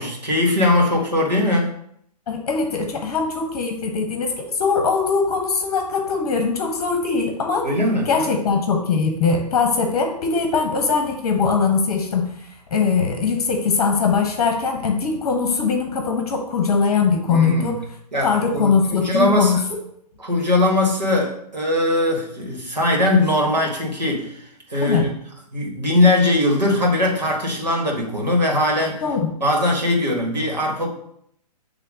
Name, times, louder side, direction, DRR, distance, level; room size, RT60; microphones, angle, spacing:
voice 1, 0.0-1.7 7.6-8.4 17.3-17.7 18.1-19.6 20.2-24.4 24.7-25.1 25.5-29.0 29.4-30.9, left 1 dB, 80° right, -2 dB, 2.0 m, -20 dB
voice 2, 2.3-7.7 8.1-12.3 12.7-17.8 18.2-19.6 24.8-25.1 29.0-29.3, left 5 dB, 40° left, 3 dB, 1.0 m, -21 dB
8.1 x 3.2 x 3.8 m, 0.70 s
figure-of-eight pair, 125°, 21 cm